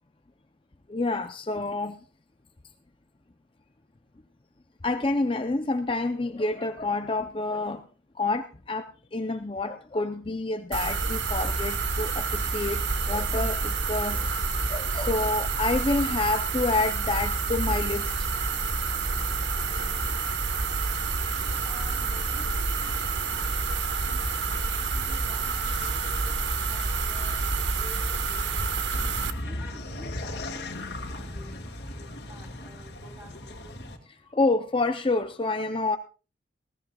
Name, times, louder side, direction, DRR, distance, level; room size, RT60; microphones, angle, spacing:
voice 1, 0.9-2.0 4.8-7.8 8.2-8.9 9.1-18.1 34.3-36.0, left 3 dB, 30° left, 8 dB, 0.6 m, -28 dB
sound 1, 10.7-29.3, right 4 dB, 75° right, 1.1 m, -28 dB
voice 2, 21.6-23.6 24.0-29.0 29.4-33.7, equal, 10° right, 1 dB, 3.9 m, -50 dB
sound 2, 28.9-34.0, left 1 dB, 65° left, 2.1 m, -37 dB
19.5 x 16.5 x 2.3 m, 0.34 s
head